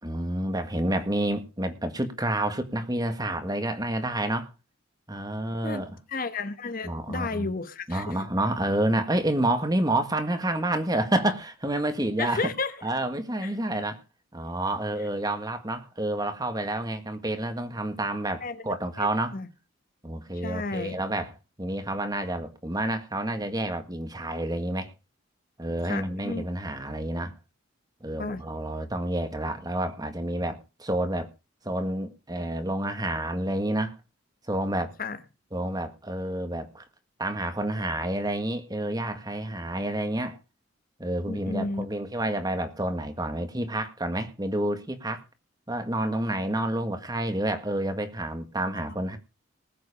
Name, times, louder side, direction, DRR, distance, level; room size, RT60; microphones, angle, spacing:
voice 1, 0.0-4.5 5.1-6.0 6.8-7.5 7.9-12.4 12.8-14.0 14.3-19.3 20.0-24.9 25.6-27.3 28.0-31.3 31.6-34.0 34.5-34.9 35.5-36.8 37.2-40.4 41.0-45.2 45.7-49.2, right 1 dB, 20° right, 1.8 m, -29 dB
voice 2, 6.1-8.2 12.2-12.7 13.4-13.5 18.4-18.6 19.0-19.1 19.3-19.5 20.4-21.0 25.9-26.4 28.2-28.4 35.0-35.2 41.3-41.9, left 3 dB, 45° left, 1.2 m, -32 dB
20.0 x 8.0 x 5.0 m
head